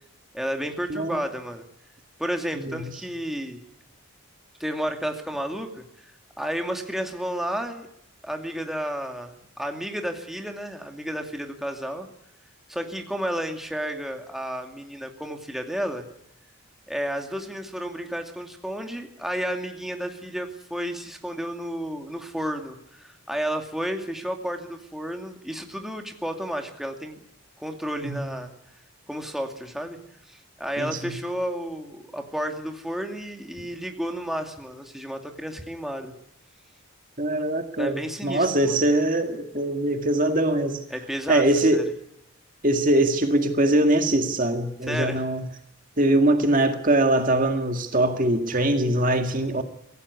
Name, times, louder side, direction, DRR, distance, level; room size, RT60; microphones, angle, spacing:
voice 1, 0.3-1.6 2.2-3.6 4.6-7.9 8.2-12.1 12.7-16.0 16.9-27.2 27.6-28.5 29.1-30.0 30.3-36.1 37.8-38.8 40.9-41.4 41.7-41.8 44.9-45.2, equal, ahead, 2.4 m, -32 dB
voice 2, 30.8-31.1 37.2-40.8 41.3-41.9 42.6-45.4 46.0-49.6, right 1 dB, 35° right, 2.0 m, -22 dB
24.5 x 17.0 x 9.7 m
head